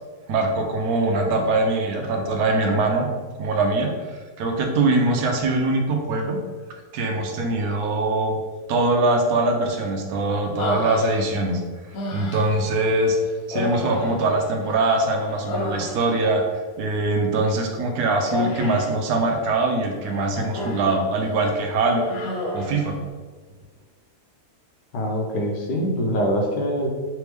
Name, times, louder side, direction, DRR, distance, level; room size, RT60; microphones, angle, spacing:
voice 1, 0.3-3.1 3.4-6.4 6.9-8.4 8.7-11.6 12.1-13.2 13.5-16.4 16.8-22.1 22.5-22.9, right 2 dB, 75° right, 2 dB, 1.0 m, -22 dB
Human voice, 10.6-11.5 11.9-12.7 13.5-14.9 15.2-16.3 18.3-19.0 20.0-21.0 21.4-21.6 22.0-22.8, left 2 dB, 65° left, 1.2 m, -31 dB
voice 2, 24.9-26.9, equal, 85° left, 1 dB, 1.3 m, -24 dB
3.4 x 3.2 x 3.2 m, 1.4 s
omnidirectional pair, 1.7 m